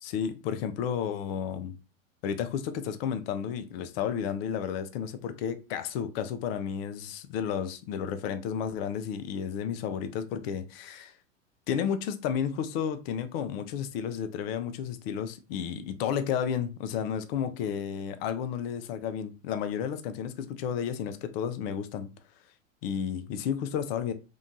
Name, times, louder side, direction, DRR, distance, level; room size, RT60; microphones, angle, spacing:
voice 1, 0.0-1.7 2.2-11.1 11.7-22.1 22.8-24.1, left 8 dB, 50° left, 0.5 m, -32 dB
2.7 x 2.2 x 2.6 m
hypercardioid pair, 100°, 39 cm